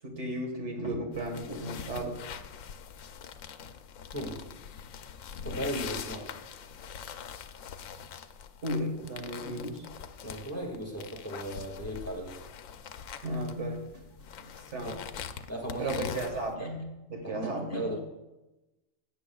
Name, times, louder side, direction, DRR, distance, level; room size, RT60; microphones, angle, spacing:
voice 1, 0.0-2.2 8.6-9.9 13.2-14.1 14.4-15.0 15.8-17.9, right 1 dB, 65° right, 2 dB, 2.0 m, -35 dB
sound 1, 1.1-16.5, left 7 dB, 85° left, 1.1 m, -43 dB
voice 2, 5.4-6.3 10.2-12.4 14.8-14.9 15.5-16.0 16.3-16.7 17.3-18.0, right 1 dB, 10° left, 0 dB, 1.7 m, -36 dB
16.5 x 9.0 x 2.3 m, 1.0 s
omnidirectional pair, 1.3 m